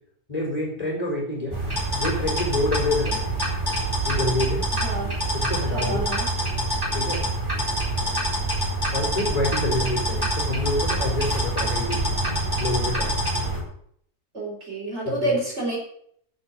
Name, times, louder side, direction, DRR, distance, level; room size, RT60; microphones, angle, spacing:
voice 1, 0.3-1.6 1.9-3.2 4.0-4.6 5.3-6.1 6.9-7.3 8.9-12.1 12.6-13.2 15.0-15.3, left 2 dB, 25° left, -1 dB, 4.1 m, -27 dB
sound 1, 1.5-13.6, right 1 dB, 15° right, 4.3 m, -26 dB
voice 2, 4.7-5.2 5.6-6.3 14.3-15.8, right 1 dB, 45° right, -2 dB, 4.4 m, -28 dB
10.0 x 7.5 x 7.7 m, 0.66 s
omnidirectional pair, 1.6 m